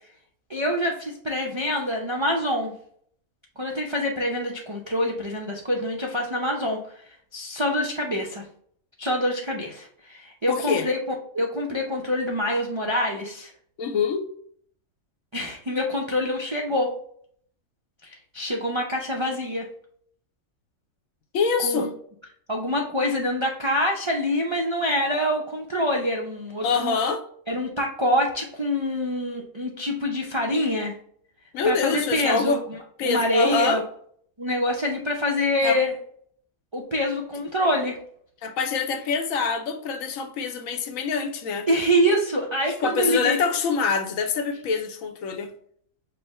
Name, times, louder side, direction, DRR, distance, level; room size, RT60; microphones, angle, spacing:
voice 1, 0.5-2.7 3.6-6.8 7.3-8.4 9.0-11.0 11.3-13.5 15.3-16.9 18.0-19.7 21.6-21.9 22.5-27.0 27.5-30.9 31.6-32.6 33.0-33.8 34.4-35.9 36.7-38.0 41.7-43.4, equal, 45° right, 0.3 m, -25 dB
voice 2, 10.5-10.9 13.8-14.3 21.3-21.9 26.6-27.2 31.5-32.6 33.0-33.8 35.6-35.8 38.4-41.7 42.8-45.5, left 5 dB, 80° left, 1.0 m, -25 dB
5.4 x 2.1 x 4.1 m
omnidirectional pair, 1.4 m